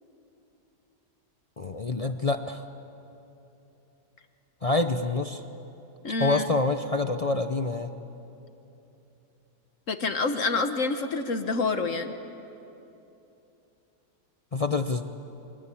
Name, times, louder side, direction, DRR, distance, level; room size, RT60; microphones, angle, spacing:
voice 1, 1.6-2.6 4.6-5.4 6.2-7.9 14.5-15.0, left 3 dB, 70° left, 7 dB, 0.3 m, -26 dB
voice 2, 6.0-6.5 9.9-12.1, left 3 dB, 50° left, 8 dB, 1.4 m, -27 dB
28.5 x 24.5 x 8.6 m, 2.9 s
omnidirectional pair, 1.9 m